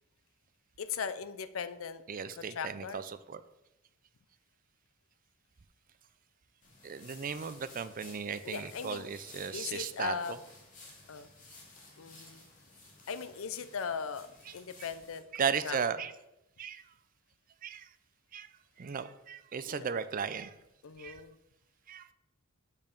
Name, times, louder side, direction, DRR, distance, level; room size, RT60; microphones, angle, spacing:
voice 1, 0.8-2.0 2.3-3.0 8.4-9.1 9.5-10.4 11.1-11.3 12.0-12.5 13.1-14.3 14.5-16.1 19.7-19.9 20.8-21.4, left 6 dB, 75° left, 13 dB, 0.5 m, -39 dB
voice 2, 2.1-3.0 3.3-3.4 6.8-10.1 15.4-16.1 16.6-16.8 17.6-17.8 18.3-18.5 18.8-20.5 21.0-21.2 21.9-22.1, right 6 dB, 40° right, 13 dB, 0.4 m, -35 dB
sound 1, 6.6-15.2, left 3 dB, 40° left, 1.9 m, -55 dB
6.9 x 5.5 x 5.3 m, 0.91 s
head